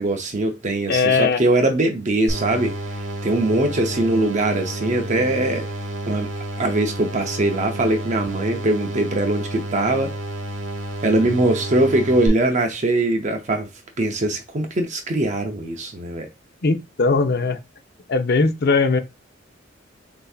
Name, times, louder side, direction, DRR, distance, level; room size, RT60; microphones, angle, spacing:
voice 1, 0.0-2.7 3.2-5.7 6.1-6.3 6.6-10.1 11.0-13.7 14.0-16.3, right 2 dB, 40° right, 0.6 m, -21 dB
voice 2, 0.9-1.4 16.6-17.6 18.1-19.0, left 4 dB, 55° left, 0.6 m, -19 dB
sound 1, 2.3-12.3, right 1 dB, 70° right, 1.2 m, -30 dB
6.8 x 2.7 x 2.3 m
head